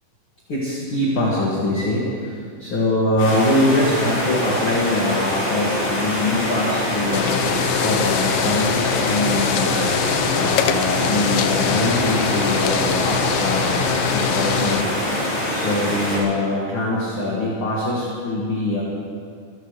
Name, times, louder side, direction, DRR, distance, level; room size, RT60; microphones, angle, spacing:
voice 1, 0.5-7.4 7.8-9.8 10.3-15.0 15.5-18.8, left 1 dB, 40° left, -6 dB, 2.4 m, -23 dB
sound 1, 3.2-16.2, left 1 dB, 60° left, 6.7 m, -24 dB
sound 2, 7.1-14.8, left 9 dB, 80° left, 2.1 m, -23 dB
24.5 x 15.0 x 3.3 m, 2.3 s
omnidirectional pair, 4.7 m